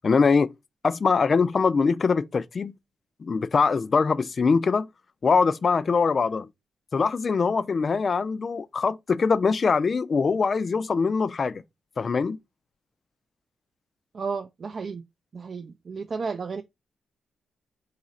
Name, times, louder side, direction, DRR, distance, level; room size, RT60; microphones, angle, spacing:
voice 1, 0.0-0.5 0.8-2.8 3.2-4.9 5.2-6.5 6.9-11.6 12.0-12.4, left 5 dB, 45° left, 0.4 m, -23 dB
voice 2, 14.1-15.0 15.3-16.6, right 5 dB, 50° right, 0.4 m, -33 dB
4.0 x 2.5 x 4.0 m
cardioid pair, 75°, 0 cm